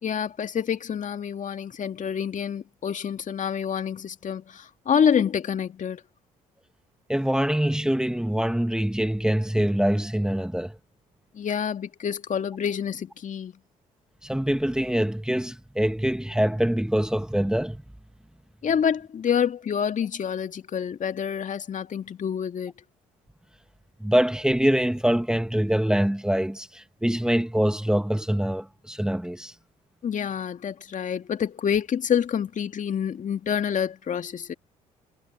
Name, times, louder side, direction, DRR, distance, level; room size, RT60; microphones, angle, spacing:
voice 1, 0.0-6.0 11.3-13.5 18.6-22.7 30.0-34.5, left 8 dB, 50° left, 2.2 m, -27 dB
voice 2, 7.1-10.8 14.2-17.8 24.0-29.5, equal, 5° right, 1.7 m, -24 dB
hypercardioid pair, 55°, 17 cm